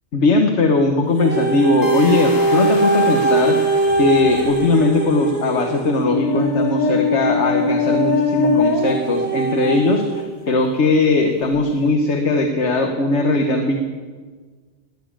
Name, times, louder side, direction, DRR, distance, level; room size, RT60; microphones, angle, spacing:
voice 1, 0.1-3.6 4.0-13.8, left 3 dB, 80° left, 4 dB, 1.4 m, -19 dB
sound 1, 1.2-10.3 10.9-11.0, right 1 dB, 40° left, 2.1 m, -20 dB
sound 2, 1.8-5.0, left 3 dB, 60° left, 1.4 m, -34 dB
20.0 x 7.2 x 8.8 m, 1.5 s
omnidirectional pair, 1.2 m